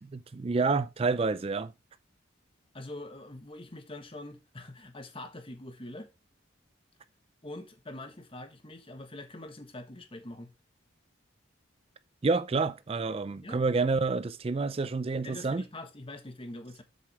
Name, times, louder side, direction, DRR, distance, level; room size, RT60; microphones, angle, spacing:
voice 1, 0.0-1.7 12.2-15.6, right 4 dB, 30° right, 0.4 m, -28 dB
voice 2, 2.7-6.1 7.4-10.5 13.4-13.6 15.2-16.8, left 1 dB, 25° left, 1.3 m, -44 dB
7.8 x 7.1 x 3.4 m
head